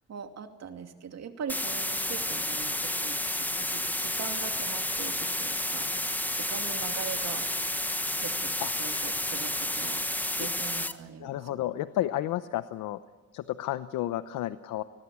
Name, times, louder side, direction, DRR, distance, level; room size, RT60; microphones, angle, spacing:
voice 1, 0.1-7.5 8.2-10.0 10.3-11.6, right 6 dB, 60° right, 5 dB, 2.7 m, -41 dB
sound 1, 1.5-10.9, left 1 dB, 5° left, 1.3 m, -31 dB
voice 2, 11.2-13.0 13.3-14.8, left 13 dB, 90° left, 12 dB, 0.8 m, -31 dB
29.5 x 20.5 x 8.4 m, 1.3 s
cardioid pair, 90°, 30 cm